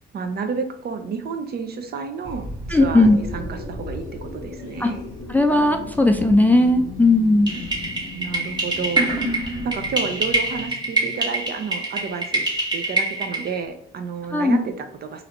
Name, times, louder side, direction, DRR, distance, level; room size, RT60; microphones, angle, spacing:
voice 1, 0.1-5.0 8.1-9.1 9.6-15.2, right 5 dB, 50° right, 7 dB, 0.5 m, -31 dB
Thunder, 2.2-10.7, equal, 75° right, 1.3 m, -39 dB
sound 1, 2.7-11.3, left 4 dB, 65° left, 0.6 m, -39 dB
voice 2, 2.7-3.2 4.8-4.9 5.3-7.5 14.3-14.6, left 2 dB, 10° left, 4 dB, 0.3 m, -17 dB
sound 2, 7.5-13.6, right 2 dB, 20° right, 1.1 m, -25 dB
3.1 x 2.5 x 2.9 m, 0.73 s
cardioid pair, 90°, 20 cm